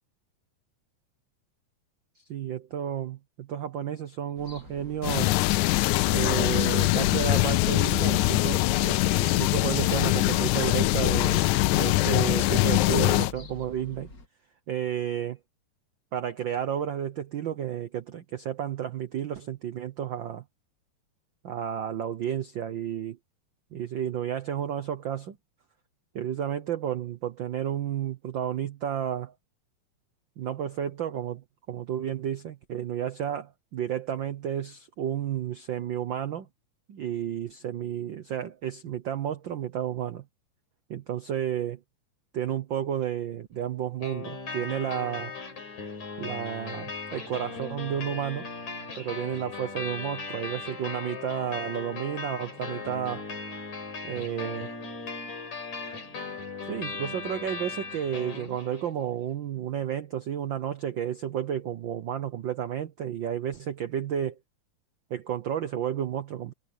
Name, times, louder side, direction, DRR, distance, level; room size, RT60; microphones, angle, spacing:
voice 1, 2.1-5.3 6.1-14.1 14.7-15.4 16.1-20.4 21.4-23.2 23.7-25.4 26.1-29.3 30.4-36.5 36.9-40.2 40.9-41.8 42.3-45.3 46.2-48.5 49.0-53.4 54.0-54.7 56.7-64.4 65.1-66.5, right 9 dB, 80° right, 1.0 m, -32 dB
sound 1, 4.4-14.3, left 3 dB, 30° left, 2.6 m, -44 dB
sound 2, 5.0-13.3, left 19 dB, 85° left, 2.0 m, -23 dB
sound 3, 44.0-59.0, left 4 dB, 70° left, 6.7 m, -38 dB
omnidirectional pair, 3.4 m